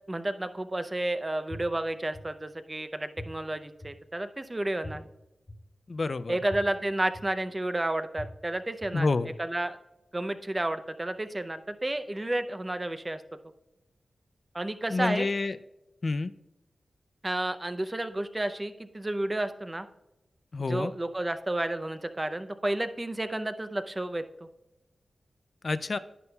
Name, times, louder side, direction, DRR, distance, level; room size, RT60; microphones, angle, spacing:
voice 1, 0.1-5.0 6.3-9.1 9.5-9.8 10.1-13.2 14.5-15.3 17.2-19.9 20.7-24.2, right 1 dB, 20° right, 10 dB, 0.5 m, -31 dB
sound 1, 1.5-1.6 2.1-2.2 3.2-3.3 3.8-3.9 4.8-4.9 5.5-5.6 6.5-6.6 7.1-7.2 8.2-8.3 8.8-8.9, left 2 dB, 30° left, 1.5 m, -39 dB
voice 2, 5.9-6.4 8.9-9.3 14.9-15.6 16.0-16.3 20.5-20.9 25.6-26.0, left 3 dB, 45° left, 13 dB, 0.3 m, -28 dB
11.0 x 9.5 x 2.3 m, 0.94 s
wide cardioid pair, 95°, 0 cm